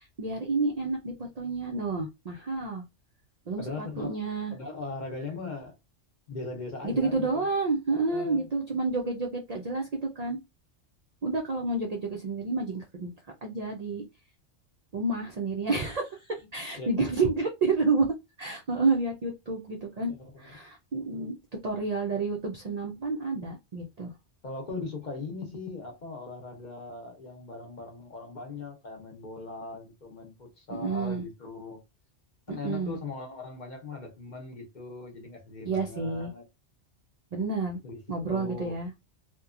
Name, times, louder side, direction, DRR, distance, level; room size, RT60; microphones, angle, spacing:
voice 1, 0.0-2.8 3.5-4.6 6.8-9.9 10.2-10.4 11.2-13.1 13.4-14.0 14.9-21.3 21.6-24.1 30.7-31.2 32.5-33.0 35.6-36.3 37.3-37.8 38.1-38.9, right 3 dB, 65° right, 0.4 m, -30 dB
voice 2, 3.6-4.2 4.5-5.7 6.3-7.5 7.9-8.5 16.7-16.9 17.2-17.3 20.1-20.5 24.4-31.8 32.5-36.4 37.8-38.8, left 3 dB, 45° left, 0.7 m, -39 dB
2.9 x 2.2 x 2.4 m
omnidirectional pair, 1.2 m